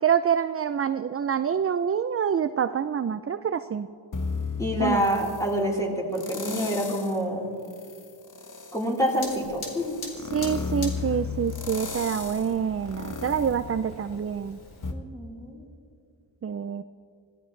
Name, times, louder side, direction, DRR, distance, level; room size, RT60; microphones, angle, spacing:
voice 1, 0.0-3.9 4.8-5.0 10.3-14.6 16.4-16.8, right 8 dB, 35° right, 11 dB, 0.4 m, -26 dB
sound 1, 4.1-5.5 6.1-7.2 7.7-14.4 14.8-14.9, left 4 dB, 40° left, 1.1 m, -35 dB
voice 2, 4.6-7.5 8.7-10.0 14.9-15.6, equal, 5° left, -4 dB, 3.9 m, -27 dB
Fire, 9.1-14.9, left 2 dB, 85° left, 3.4 m, -43 dB
26.0 x 16.0 x 3.2 m, 2.4 s
wide cardioid pair, 75°, 47 cm